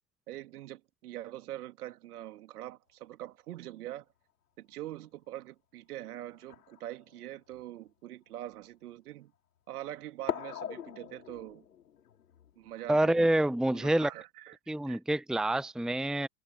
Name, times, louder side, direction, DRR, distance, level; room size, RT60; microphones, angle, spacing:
voice 1, 0.3-4.1 4.6-9.3 9.7-11.6 12.6-13.3 13.7-14.5 14.9-15.0, right 14 dB, 70° right, 2.6 m, -43 dB
sound 1, 5.0-5.1 6.3-7.6 8.4-8.5 10.2-13.4, left 9 dB, 75° left, 6.3 m, -42 dB
voice 2, 12.9-14.1 14.7-16.3, right 1 dB, ahead, 1.1 m, -27 dB
figure-of-eight pair, 75°, 47 cm